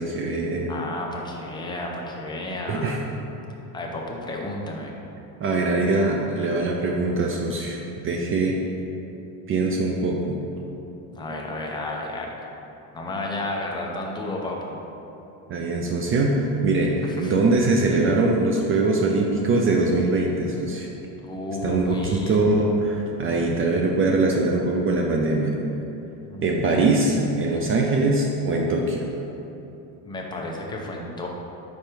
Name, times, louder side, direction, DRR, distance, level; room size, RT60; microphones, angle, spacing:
voice 1, 0.0-0.7 2.7-3.0 5.4-8.5 9.5-10.4 15.5-20.9 21.6-25.5 26.4-29.1, right 2 dB, 35° right, 0 dB, 0.4 m, -22 dB
voice 2, 0.7-3.0 3.7-4.9 11.1-12.3 12.9-14.8 17.2-17.3 21.2-22.4 26.3-26.5 30.0-31.3, left 2 dB, 10° left, -1 dB, 0.6 m, -32 dB
5.2 x 4.5 x 4.5 m, 2.9 s
cardioid pair, 140°, 41 cm